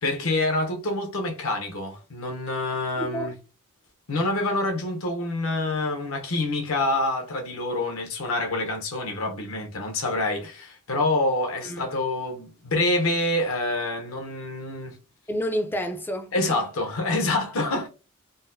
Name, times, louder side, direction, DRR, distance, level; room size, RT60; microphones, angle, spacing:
voice 1, 0.0-3.3 4.1-15.0 16.3-17.9, left 2 dB, 70° left, 0.8 m, -26 dB
voice 2, 3.0-3.4 11.6-11.9 15.3-16.6, equal, 10° left, 0.4 m, -30 dB
3.9 x 2.1 x 2.6 m
head